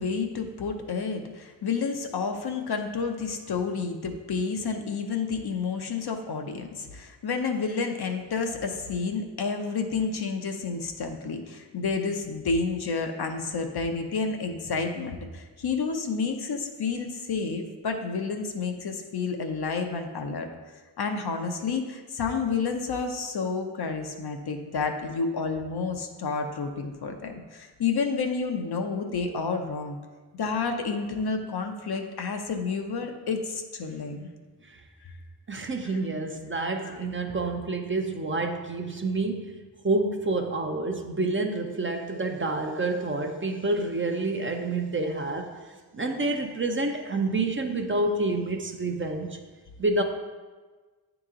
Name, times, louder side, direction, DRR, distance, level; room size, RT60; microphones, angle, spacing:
voice 1, 0.0-20.5 21.0-30.0 30.3-34.3 35.0-35.1 35.8-36.0 36.8-37.0, left 4 dB, 60° left, 4 dB, 0.7 m, -30 dB
voice 2, 35.5-45.5 45.9-49.4 49.8-50.0, right 2 dB, 25° right, 3 dB, 0.6 m, -28 dB
8.7 x 3.0 x 3.7 m, 1.3 s
cardioid pair, 50°, 44 cm